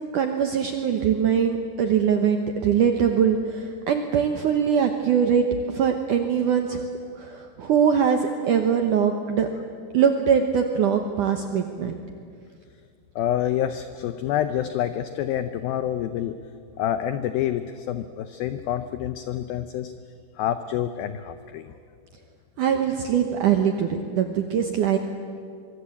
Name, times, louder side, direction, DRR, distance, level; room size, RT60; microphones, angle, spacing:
voice 1, 0.1-6.9 7.2-9.5 9.9-12.0 22.6-25.0, right 7 dB, 75° right, 5 dB, 1.9 m, -22 dB
voice 2, 13.2-16.3 16.8-19.9 20.4-21.7, left 11 dB, 85° left, 11 dB, 2.1 m, -27 dB
24.5 x 23.5 x 8.5 m, 2.3 s
omnidirectional pair, 5.2 m